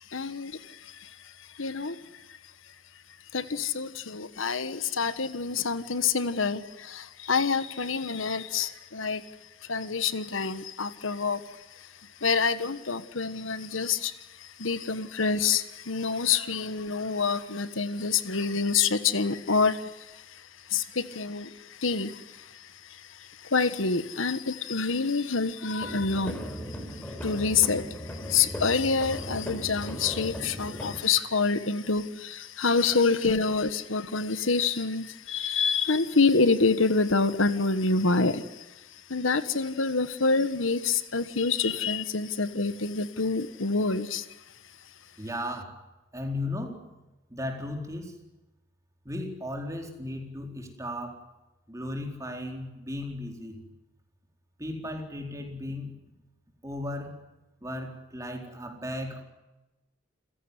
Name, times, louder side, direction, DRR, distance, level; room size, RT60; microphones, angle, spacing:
voice 1, 0.1-2.2 3.3-9.3 9.6-11.9 12.2-44.3, left 4 dB, 90° left, 12 dB, 1.4 m, -27 dB
sound 1, 25.8-31.0, equal, 10° left, 3.8 m, -37 dB
voice 2, 45.2-45.8 46.1-46.9 47.3-48.2 49.0-51.2 51.7-53.6 54.6-55.9 56.6-57.2 57.6-59.2, left 1 dB, 15° right, 2 dB, 4.2 m, -35 dB
28.5 x 16.5 x 9.8 m, 1.0 s
head